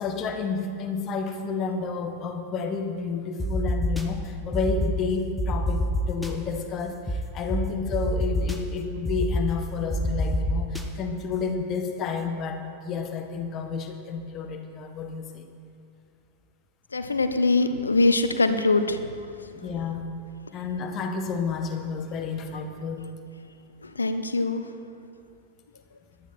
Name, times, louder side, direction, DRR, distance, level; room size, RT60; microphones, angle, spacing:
voice 1, 0.0-15.5 19.5-20.0 20.5-23.1, left 5 dB, 35° left, 6 dB, 1.4 m, -30 dB
sound 1, 3.4-4.0 4.5-4.9 5.4-6.3 7.1-7.2 7.5-7.6 7.9-8.6 9.1-9.4 9.9-10.8, left 1 dB, ahead, 1.3 m, -26 dB
voice 2, 16.9-19.0 24.0-24.6, left 3 dB, 75° left, 10 dB, 0.8 m, -22 dB
18.0 x 12.0 x 4.3 m, 2.4 s
figure-of-eight pair, 90°, 0 cm